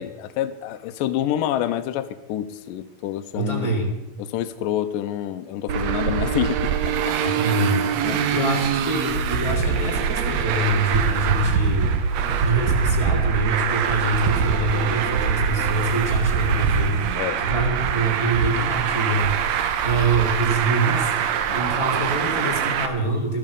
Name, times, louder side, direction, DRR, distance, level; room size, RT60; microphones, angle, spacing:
voice 1, 0.0-3.7 4.2-7.8 8.0-8.5 17.2-17.4 21.5-21.8, left 11 dB, 80° left, 10 dB, 2.2 m, -28 dB
voice 2, 3.3-3.9 7.2-7.9 8.3-11.9 12.4-19.4 19.8-23.4, right 2 dB, 10° right, 2 dB, 1.7 m, -25 dB
Traffic noise roadway noise, 5.7-22.9, right 7 dB, 70° right, 1.7 m, -23 dB
14.0 x 14.0 x 5.3 m, 0.94 s
omnidirectional pair, 4.1 m